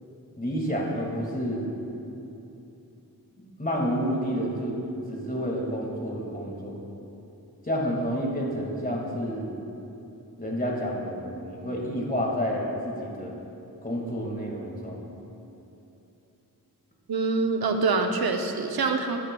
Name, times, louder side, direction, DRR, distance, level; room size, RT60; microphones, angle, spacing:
voice 1, 0.4-1.6 3.6-4.8 5.1-6.8 7.6-9.6 10.4-13.4 13.8-15.1, equal, 20° left, -2 dB, 2.0 m, -29 dB
voice 2, 17.1-19.2, right 4 dB, 75° right, 5 dB, 0.7 m, -25 dB
11.5 x 9.3 x 2.3 m, 2.9 s
cardioid pair, 40°, 38 cm